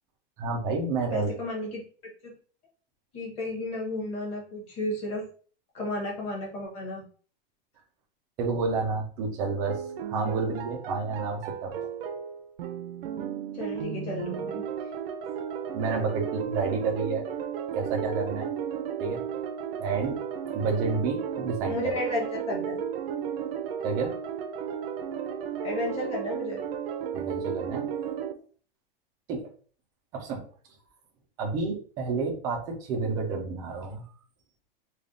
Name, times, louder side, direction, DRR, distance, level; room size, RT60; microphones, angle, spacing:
voice 1, 0.4-1.3 8.4-9.8 10.1-11.8 15.7-17.3 17.7-18.5 19.0-19.2 19.7-20.2 20.5-21.8 23.8-24.1 27.1-27.9 29.3-29.4 30.1-30.4 31.4-34.0, right 4 dB, 15° right, 0 dB, 0.3 m, -30 dB
voice 2, 1.1-1.8 2.2-2.3 3.1-5.2 5.7-7.0 13.5-14.7 21.7-22.8 25.6-26.6, left 1 dB, 20° left, -3 dB, 1.1 m, -33 dB
sound 1, 9.7-28.3, right 8 dB, 75° right, 0.6 m, -34 dB
3.4 x 2.3 x 3.7 m, 0.42 s
supercardioid pair, 170°, 30 cm